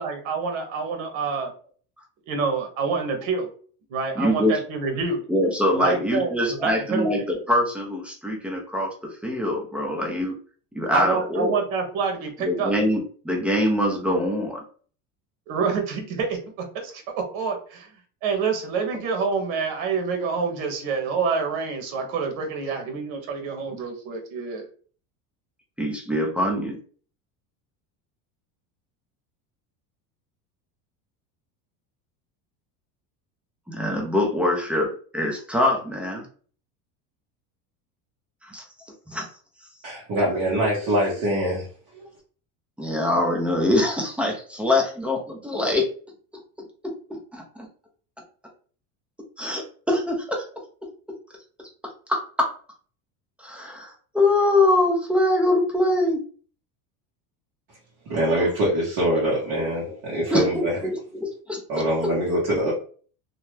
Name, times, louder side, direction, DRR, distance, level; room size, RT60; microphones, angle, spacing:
voice 1, 0.0-1.5 2.3-3.5 3.9-5.2 5.8-7.1 10.9-12.7 15.5-17.9 18.2-24.7, right 5 dB, 90° right, 4 dB, 1.0 m, -27 dB
voice 2, 4.2-4.6 5.3-8.9 9.2-10.3 10.7-11.6 12.4-14.6 25.8-26.8 33.7-36.3 38.4-38.6 39.1-39.3 42.8-45.9 46.8-47.7 49.4-50.4 51.8-52.5 53.4-56.2 59.6-59.7 60.3-61.8, left 1 dB, 5° right, 0 dB, 0.3 m, -24 dB
voice 3, 39.8-41.7 41.9-42.1 58.1-60.8 61.7-62.7, right 1 dB, 50° right, -6 dB, 1.2 m, -24 dB
2.7 x 2.2 x 3.1 m, 0.43 s
cardioid pair, 140°, 39 cm